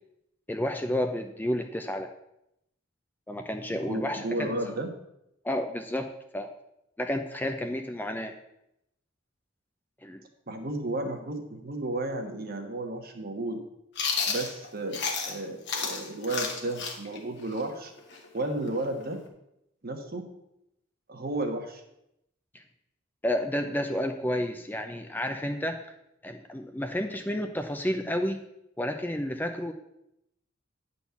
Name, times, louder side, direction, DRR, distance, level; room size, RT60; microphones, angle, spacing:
voice 1, 0.5-2.1 3.3-4.5 5.4-6.1 6.3-6.5 7.0-8.3 10.0-10.2 22.5-22.6 23.2-25.8 26.2-28.4 28.8-29.7, left 1 dB, 10° left, 5 dB, 0.5 m, -31 dB
voice 2, 3.7-4.9 10.5-13.6 14.3-17.9 18.3-19.2 19.8-20.3 21.1-21.8, right 2 dB, 50° right, 4 dB, 1.3 m, -33 dB
Chewing mastication, 13.9-15.4 15.7-19.3, left 5 dB, 60° left, 1.4 m, -32 dB
9.7 x 4.2 x 6.9 m, 0.81 s
head